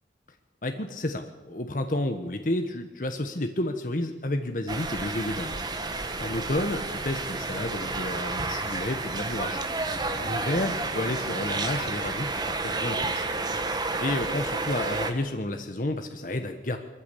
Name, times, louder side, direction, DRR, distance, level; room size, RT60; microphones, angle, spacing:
voice 1, 0.6-5.6 6.2-9.6 10.2-13.3 14.0-16.8, left 1 dB, 45° left, 6 dB, 1.1 m, -31 dB
sound 1, 4.7-15.1, right 3 dB, 25° right, 1.4 m, -31 dB
sound 2, 5.2-12.8, equal, 90° right, 3.6 m, -52 dB
21.5 x 14.5 x 8.4 m, 1.2 s
head